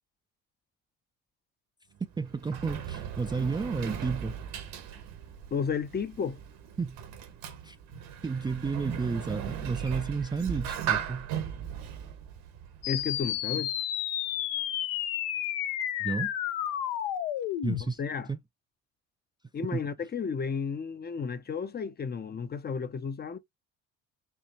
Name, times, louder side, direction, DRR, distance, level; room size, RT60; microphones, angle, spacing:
Sliding door, 2.0-13.4, right 9 dB, 70° right, 1.3 m, -37 dB
voice 1, 2.2-4.4 6.8-7.0 7.6-7.8 8.2-11.3 16.0-16.3 17.6-18.0 18.3-18.4 19.7-19.8, right 4 dB, 10° right, 0.4 m, -32 dB
voice 2, 5.5-6.4 12.9-13.7 17.8-18.3 19.5-23.4, left 6 dB, 25° left, 0.6 m, -33 dB
sound 1, 12.8-17.8, left 11 dB, 70° left, 0.7 m, -31 dB
4.5 x 2.4 x 2.8 m
hypercardioid pair, 70°, 36 cm